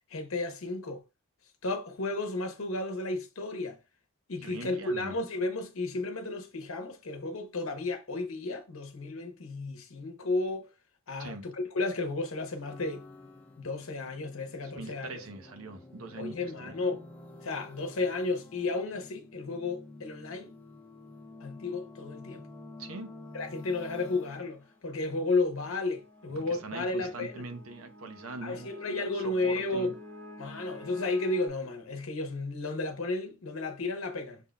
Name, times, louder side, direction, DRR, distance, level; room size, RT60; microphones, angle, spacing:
voice 1, 0.1-1.0 1.6-3.8 4.3-10.7 11.1-13.0 13.6-15.2 16.2-17.1 17.4-20.5 21.4-22.4 23.3-27.4 28.4-30.0 30.4-34.4, left 3 dB, 80° left, 1.0 m, -33 dB
voice 2, 4.4-5.2 11.2-11.5 14.6-16.8 22.8-23.1 26.6-28.7 29.1-29.9, right 2 dB, 90° right, 0.9 m, -42 dB
sound 1, 12.6-31.5, left 2 dB, 5° left, 0.7 m, -50 dB
5.9 x 3.7 x 2.3 m
head